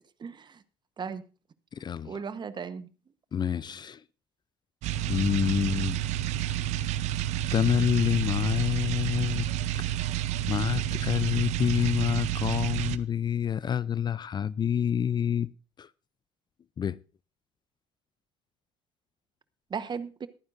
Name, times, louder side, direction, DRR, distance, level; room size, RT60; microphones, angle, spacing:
voice 1, 0.2-0.6 1.0-1.2 2.0-2.9 19.7-20.3, right 6 dB, 35° right, 1.1 m, -36 dB
voice 2, 1.8-2.1 3.3-4.0 5.1-6.0 7.5-9.5 9.7-9.9 10.5-15.5 15.8-15.9 16.8-17.0, left 8 dB, 35° left, 0.5 m, -27 dB
sound 1, 4.8-13.0, right 12 dB, 65° right, 0.7 m, -30 dB
22.0 x 9.4 x 2.6 m
hypercardioid pair, 70°, 13 cm